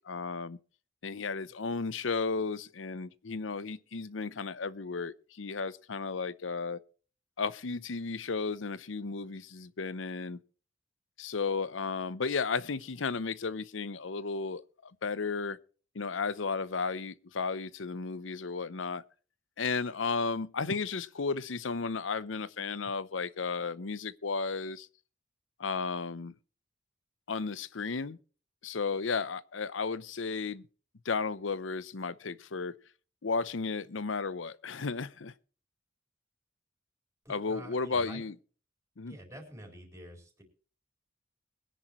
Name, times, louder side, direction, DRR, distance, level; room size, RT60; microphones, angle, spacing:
voice 1, 0.1-0.6 1.0-6.8 7.4-10.4 11.2-15.6 15.9-19.0 19.6-24.9 25.6-26.3 27.3-28.2 28.6-30.7 31.0-32.7 33.2-35.3 37.3-38.3 39.0-39.2, left 4 dB, 90° left, 0.7 m, -34 dB
voice 2, 37.2-38.2 39.1-40.4, equal, 15° right, 4.2 m, -48 dB
21.5 x 10.5 x 3.1 m
head